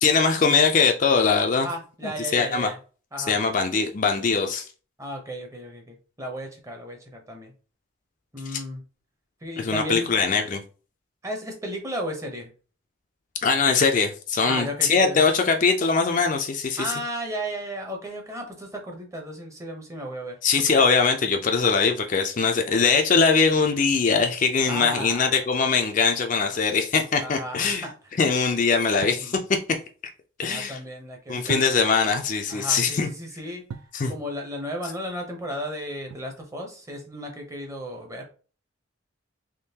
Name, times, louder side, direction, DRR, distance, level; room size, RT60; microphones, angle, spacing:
voice 1, 0.0-1.7 2.0-2.7 3.3-4.7 8.5-8.6 9.6-10.6 13.4-16.9 20.4-27.9 28.2-29.4 30.4-30.8 31.3-33.1 33.9-34.1, left 5 dB, 40° left, 0.4 m, -22 dB
voice 2, 1.6-2.8 3.1-3.3 5.0-7.5 8.3-8.8 9.4-10.1 11.2-12.5 14.4-15.2 16.8-20.4 24.7-25.3 26.5-26.7 27.2-27.9 29.0-29.3 30.4-31.5 32.5-33.6 34.1-38.3, equal, 15° right, 0.7 m, -34 dB
sound 1, 29.0-29.3 31.5-32.1 33.7-34.0 36.1-36.6, right 6 dB, 85° right, 0.3 m, -38 dB
3.6 x 3.0 x 2.8 m
head